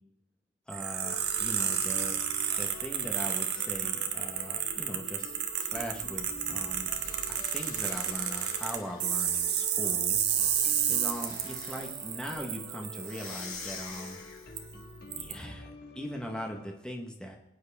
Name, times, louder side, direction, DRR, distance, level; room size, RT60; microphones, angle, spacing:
voice 1, 0.7-2.2 2.6-6.9 7.3-10.2 10.9-14.2 15.2-17.4, equal, 5° left, 1 dB, 1.2 m, -40 dB
sound 1, 0.7-14.1 14.6-14.7 15.1-15.3, right 9 dB, 50° right, 1.3 m, -31 dB
sound 2, 1.0-16.8, left 3 dB, 45° left, 1.8 m, -49 dB
sound 3, 6.9-9.9 10.9-12.1 13.0-14.7, left 6 dB, 70° left, 2.0 m, -47 dB
21.5 x 9.4 x 3.5 m, 0.84 s
head